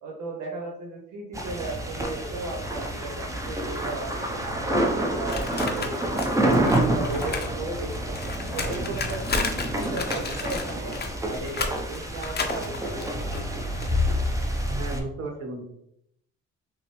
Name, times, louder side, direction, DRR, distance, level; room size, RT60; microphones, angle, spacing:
voice 1, 0.0-6.6 6.9-8.2 8.5-11.0 11.2-13.3, right 2 dB, 80° right, -1 dB, 0.9 m, -36 dB
sound 1, 1.3-15.0, right 1 dB, 10° right, 0.7 m, -28 dB
sound 2, 5.3-7.5 7.8-13.9, left 4 dB, 35° left, 0.6 m, -33 dB
voice 2, 14.7-15.6, right 2 dB, 55° right, 1 dB, 1.2 m, -34 dB
5.8 x 2.0 x 3.1 m, 0.74 s
cardioid pair, 90°, 30 cm